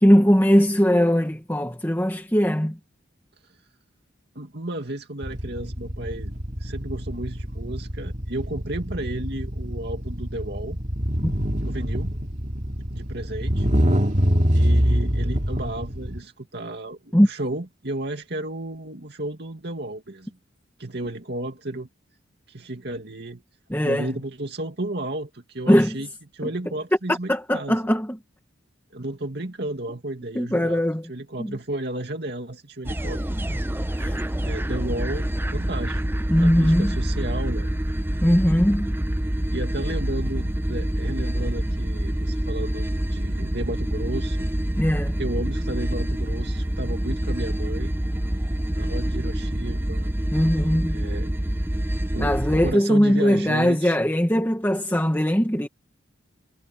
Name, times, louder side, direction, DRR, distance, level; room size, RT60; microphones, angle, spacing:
voice 1, 0.0-2.8 11.2-11.3 17.1-17.3 23.7-24.1 25.7-26.0 27.1-28.2 30.3-31.1 31.4-31.5 33.9-34.3 36.3-37.0 38.2-38.9 44.8-45.2 50.3-51.0 52.2-55.7, equal, 10° left, 1.7 m, -20 dB
voice 2, 4.3-6.3 6.6-10.8 11.6-12.1 12.9-13.7 14.5-20.4 20.8-21.9 22.5-23.4 23.8-27.8 28.9-33.2 34.4-36.0 36.4-37.7 39.5-44.5 45.2-47.9 48.7-50.1 50.9-51.3 51.6-51.7 52.1-52.4 52.6-54.0, right 1 dB, 55° right, 2.4 m, -33 dB
sound 1, 5.2-16.2, equal, 40° right, 2.5 m, -25 dB
sound 2, 32.8-52.7, right 1 dB, 10° right, 0.8 m, -26 dB
head